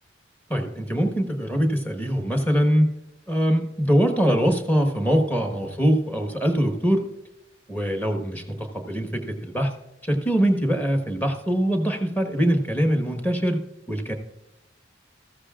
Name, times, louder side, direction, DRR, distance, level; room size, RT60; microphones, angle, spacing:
voice 1, 0.5-2.9 3.3-7.0 7.7-9.7 10.1-13.6 13.9-14.1, equal, 10° left, 4 dB, 1.3 m, -23 dB
14.5 x 13.0 x 2.5 m, 0.89 s
head